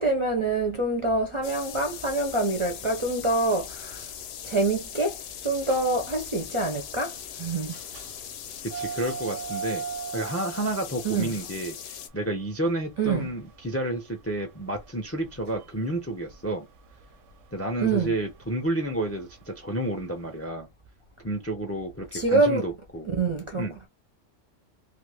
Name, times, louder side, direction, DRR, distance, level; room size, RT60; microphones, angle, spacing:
voice 1, 0.0-4.0 4.4-5.1 5.4-7.1 7.4-7.7 11.0-11.3 13.0-13.3 17.8-18.1 22.1-22.6 23.0-23.7, right 3 dB, 40° right, 0.4 m, -25 dB
sound 1, 1.4-12.1, left 9 dB, 65° left, 0.7 m, -40 dB
sound 2, 5.6-20.3, right 7 dB, 85° right, 1.0 m, -41 dB
voice 2, 8.6-9.9 10.1-16.7 17.5-20.7 21.2-23.1 23.6-23.8, right 1 dB, 20° left, 0.4 m, -30 dB
2.6 x 2.4 x 3.3 m
omnidirectional pair, 1.3 m